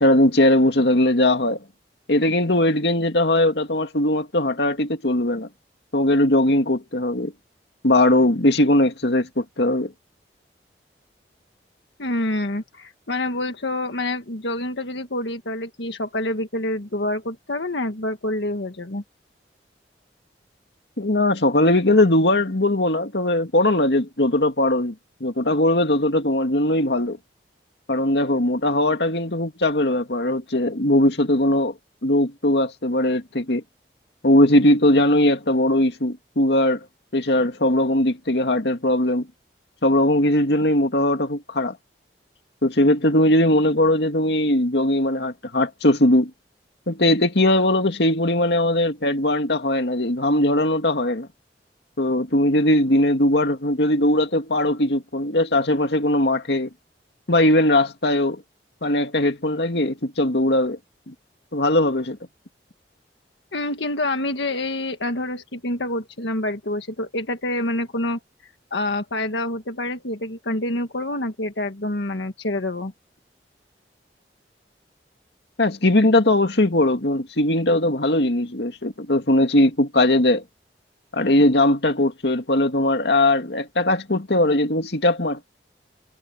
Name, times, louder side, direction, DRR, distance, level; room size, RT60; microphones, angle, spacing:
voice 1, 0.0-1.6 2.1-5.5 5.9-7.3 7.8-9.9 21.0-24.9 25.2-27.2 27.9-31.7 32.0-33.6 34.2-36.8 37.1-39.3 39.8-41.8 42.6-46.3 46.9-51.3 52.0-56.7 57.3-58.4 58.8-60.8 61.1-61.2 61.5-62.2 75.6-80.4 81.1-85.5, left 1 dB, 70° left, 2.2 m, -19 dB
voice 2, 12.0-19.0 63.5-68.2 68.7-72.9, left 1 dB, 90° left, 1.7 m, -27 dB
head